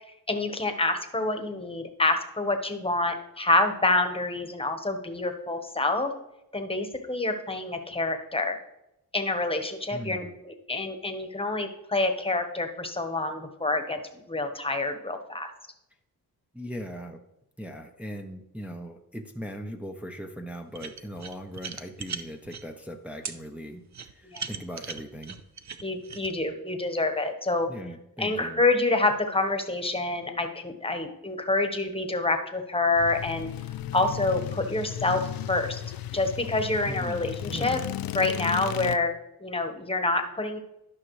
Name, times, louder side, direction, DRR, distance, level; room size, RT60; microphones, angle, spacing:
voice 1, 0.3-6.1 6.5-8.6 9.1-15.5 24.3-24.4 25.8-27.7 28.2-33.5 33.9-35.2 35.5-35.8 36.1-37.8 38.1-39.1 39.4-40.6, left 2 dB, 15° left, 6 dB, 1.2 m, -27 dB
voice 2, 9.9-10.3 16.5-17.2 17.6-23.8 24.1-25.4 27.7-28.6 36.9-37.9, equal, 5° right, 3 dB, 0.7 m, -39 dB
sound 1, 20.7-22.6 23.2-23.4 23.9-26.3, right 6 dB, 50° right, 0.7 m, -38 dB
sound 2, 33.0-39.0, left 11 dB, 70° left, 0.5 m, -35 dB
12.0 x 5.7 x 3.2 m, 0.88 s
cardioid pair, 75°, 37 cm